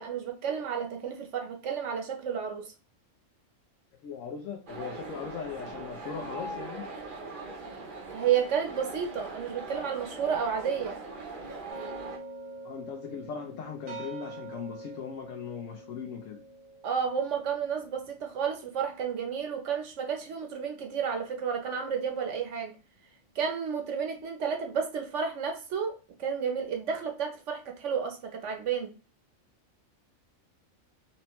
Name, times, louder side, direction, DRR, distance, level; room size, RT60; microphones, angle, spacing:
voice 1, 0.0-2.7 8.1-11.0 16.8-22.7 23.3-28.2 28.4-28.9, right 7 dB, 65° right, 1.1 m, -31 dB
voice 2, 4.0-6.9 12.6-16.4, left 7 dB, 75° left, 1.0 m, -39 dB
sound 1, 4.7-12.2, right 2 dB, 45° right, 0.8 m, -41 dB
sound 2, 11.7-20.9, right 3 dB, 85° right, 1.5 m, -46 dB
4.0 x 3.1 x 3.0 m
omnidirectional pair, 1.4 m